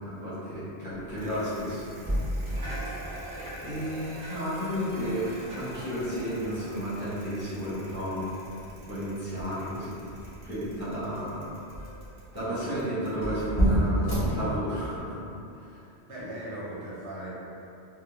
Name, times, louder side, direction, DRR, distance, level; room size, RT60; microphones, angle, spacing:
voice 1, 0.0-2.4 3.6-8.3 8.8-10.1 10.4-11.5 12.3-15.2 15.5-15.8, equal, 15° left, -13 dB, 0.6 m, -32 dB
sound 1, 1.1-15.1, right 1 dB, 20° right, 0.8 m, -33 dB
Bicycle, 1.1-14.3, right 1 dB, 55° right, 0.7 m, -45 dB
voice 2, 2.6-3.0 14.9-15.1 16.1-17.4, right 1 dB, 90° right, -8 dB, 1.1 m, -39 dB
2.2 x 2.1 x 2.9 m, 2.7 s
omnidirectional pair, 1.1 m